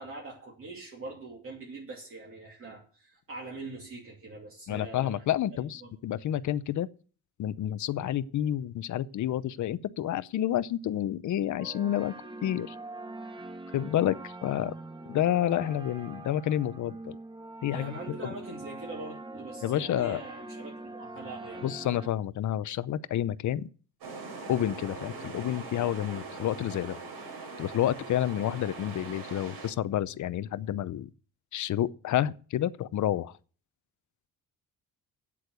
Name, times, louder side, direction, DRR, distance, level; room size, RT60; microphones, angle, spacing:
voice 1, 0.0-5.2 5.8-5.9 17.7-21.7, right 2 dB, 35° right, 2.8 m, -43 dB
voice 2, 4.7-6.9 7.4-12.1 12.4-12.8 13.7-14.7 15.1-17.2 17.6-17.9 18.2-18.3 19.6-20.2 21.6-23.7 24.5-27.0 27.6-31.1 31.5-33.3, left 12 dB, 50° left, 0.7 m, -29 dB
sound 1, 11.6-22.1, right 2 dB, 15° right, 0.9 m, -43 dB
sound 2, 24.0-29.7, right 3 dB, 90° right, 6.1 m, -41 dB
8.7 x 8.3 x 7.9 m
cardioid pair, 155°, 37 cm